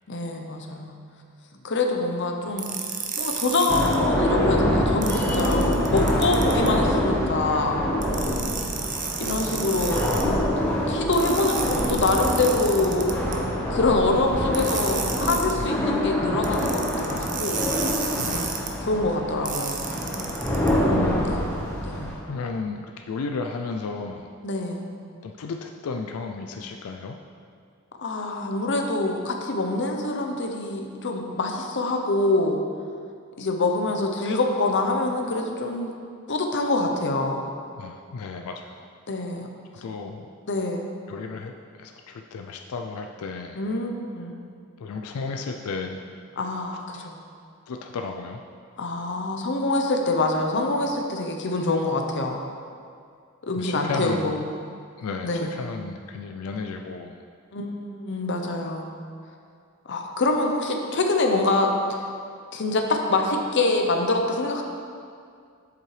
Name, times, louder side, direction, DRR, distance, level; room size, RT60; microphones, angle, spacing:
voice 1, 0.1-1.0 1.6-2.7 3.2-7.9 9.2-10.4 10.9-13.1 13.7-17.7 18.8-19.9 20.9-22.1 24.4-24.9 28.0-32.6 33.4-35.9 36.3-37.4 39.1-39.5 40.5-40.9 43.5-44.4 46.4-47.2 48.8-52.4 53.4-54.4 55.2-55.6 57.5-58.9 59.9-62.1 62.5-64.6, left 2 dB, 55° left, 3 dB, 0.7 m, -25 dB
sound 1, 2.6-3.9 5.0-6.7 8.0-10.2 11.1-13.4 14.5-15.5 16.4-18.7 19.4-20.7, right 6 dB, 35° right, 0.6 m, -32 dB
sound 2, 3.7-22.2, equal, 10° left, 1.2 m, -25 dB
voice 2, 15.5-15.9 18.2-18.5 20.2-20.5 21.1-21.3 22.2-24.3 25.2-27.2 37.8-38.9 39.8-40.3 41.1-41.5 41.8-43.6 44.8-46.0 46.9-47.1 47.7-48.4 53.6-54.4 55.0-57.2, left 4 dB, 90° left, 4 dB, 0.4 m, -34 dB
7.5 x 7.4 x 3.2 m, 2.3 s
head